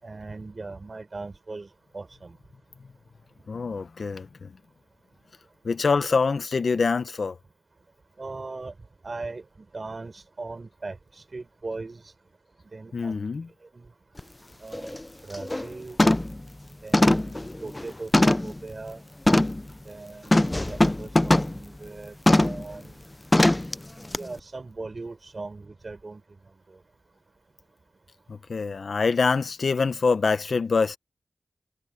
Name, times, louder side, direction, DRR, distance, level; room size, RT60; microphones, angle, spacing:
voice 1, 0.0-2.4 8.2-8.7 9.0-9.4 9.7-12.1 12.7-13.2 13.7-13.9 14.6-15.0 15.2-16.0 16.8-19.0 19.9-20.4 20.7-22.1 22.4-23.0 24.2-26.2, right 3 dB, 45° right, 5.3 m, -39 dB
voice 2, 3.5-4.5 5.6-7.4 12.9-13.5 28.3-31.0, left 4 dB, 70° left, 1.0 m, -25 dB
sound 1, 14.2-14.3 14.7-15.0 15.3-15.7 16.0-16.4 16.9-18.6 19.3-19.6 20.3-21.6 22.3-22.6 23.3-23.7 24.1-24.2, left 1 dB, 20° left, 0.5 m, -21 dB
wide cardioid pair, 110°, 0 cm